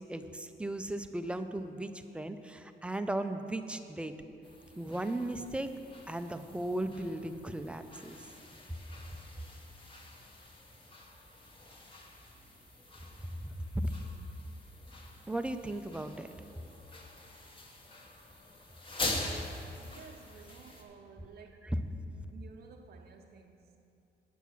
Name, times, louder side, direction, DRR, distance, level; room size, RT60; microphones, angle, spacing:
voice 1, 0.0-4.2 4.8-5.7 6.1-8.2 13.7-13.9 15.3-16.3, right 1 dB, 5° right, 8 dB, 0.4 m, -36 dB
sound 1, 4.4-20.8, left 2 dB, 25° left, 1.1 m, -45 dB
voice 2, 19.8-21.7 22.1-23.8, right 5 dB, 60° right, 2 dB, 0.6 m, -54 dB
9.2 x 7.3 x 6.0 m, 2.7 s
wide cardioid pair, 165°, 18 cm